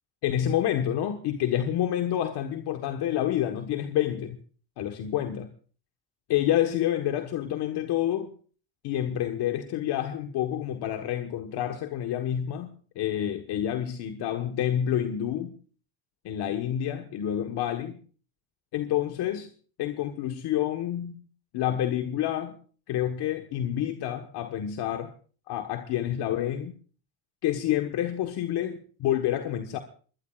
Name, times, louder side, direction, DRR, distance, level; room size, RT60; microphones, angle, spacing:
voice 1, 0.2-4.4 4.8-5.5 6.3-8.3 8.8-15.6 16.2-18.0 18.7-19.5 19.8-21.2 21.5-22.6 22.9-25.1 25.5-26.7 27.4-29.8, left 11 dB, 75° left, 1.4 m, -28 dB
23.5 x 21.0 x 2.4 m
cardioid pair, 95°, 40 cm